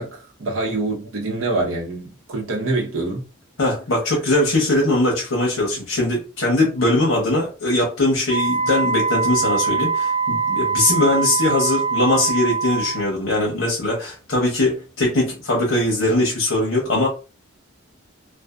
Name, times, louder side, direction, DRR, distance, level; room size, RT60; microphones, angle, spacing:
voice 1, 0.0-3.2, right 2 dB, 85° right, 0.9 m, -25 dB
voice 2, 3.6-17.1, left 2 dB, 80° left, 0.8 m, -21 dB
Wind instrument woodwind instrument, 8.3-13.1, right 5 dB, 30° right, 1.1 m, -22 dB
2.6 x 2.4 x 2.3 m
head